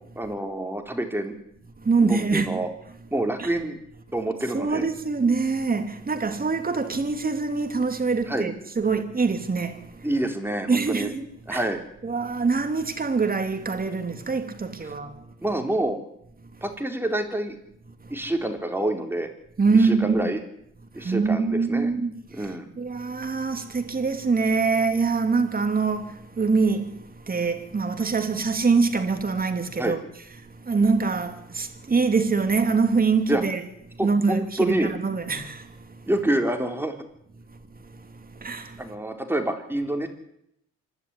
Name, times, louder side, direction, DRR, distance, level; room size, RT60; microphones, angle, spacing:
voice 1, 0.2-1.3 2.0-2.7 3.1-3.8 4.1-4.9 8.3-8.5 10.0-11.1 11.5-11.8 15.4-16.0 16.6-17.6 18.1-19.3 19.8-20.4 20.9-21.9 22.3-22.7 29.8-30.0 33.3-33.4 34.0-34.9 36.1-37.0 38.8-40.1, right 1 dB, 5° right, 4.0 m, -27 dB
voice 2, 1.8-2.6 3.4-3.5 4.5-10.1 10.7-11.7 12.0-15.3 18.0-18.1 19.6-20.2 20.9-30.0 30.4-33.6 34.0-36.1 37.5-38.8, right 4 dB, 30° right, 3.1 m, -24 dB
26.0 x 12.0 x 10.0 m
cardioid pair, 90°, 30 cm